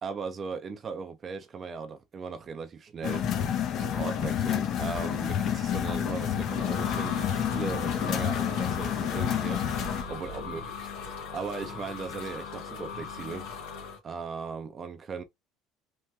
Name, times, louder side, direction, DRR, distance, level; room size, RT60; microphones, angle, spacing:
voice 1, 0.0-3.3 3.8-10.7 11.3-13.5 14.0-15.2, right 5 dB, 35° right, 0.4 m, -38 dB
sound 1, 3.0-10.0, left 9 dB, 55° left, 0.5 m, -29 dB
sound 2, 6.1-14.0, left 5 dB, 80° left, 1.1 m, -38 dB
3.2 x 2.2 x 2.8 m
supercardioid pair, 110°, 0 cm